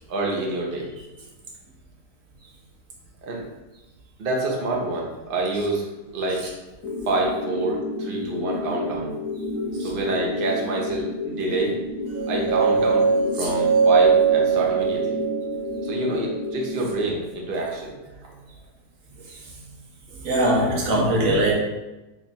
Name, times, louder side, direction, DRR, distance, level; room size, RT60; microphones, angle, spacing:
voice 1, 0.1-0.9 3.2-3.4 4.2-5.9 6.1-6.5 7.1-9.1 9.8-11.8 12.3-13.1 13.3-15.2 15.8-18.0 19.2-19.3, right 2 dB, 50° right, -1 dB, 0.7 m, -27 dB
sound 1, 6.8-16.8, left 2 dB, 75° left, 1.1 m, -31 dB
sound 2, 12.1-16.2, right 6 dB, 85° right, 1.4 m, -21 dB
voice 2, 20.2-21.5, right 1 dB, 65° right, -2 dB, 1.1 m, -21 dB
3.1 x 2.3 x 3.9 m, 1.0 s
omnidirectional pair, 1.6 m